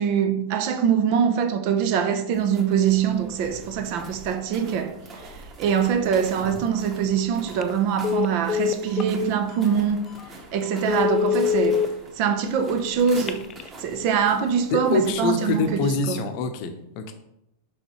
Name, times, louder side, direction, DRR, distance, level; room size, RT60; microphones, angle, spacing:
voice 1, 0.0-10.0 10.5-11.8 12.1-13.4 13.8-16.3, right 7 dB, 45° right, 0.7 m, -23 dB
sound 1, 2.3-15.8, right 2 dB, 25° right, 1.7 m, -44 dB
Telephone, 7.5-7.7 8.0-9.1 9.6-9.8 10.2-10.3 10.7-11.9 13.1-13.7, left 8 dB, 25° left, 0.5 m, -24 dB
voice 2, 14.7-17.1, left 4 dB, 45° left, 0.8 m, -25 dB
6.5 x 5.7 x 3.1 m
figure-of-eight pair, 90°, 0 cm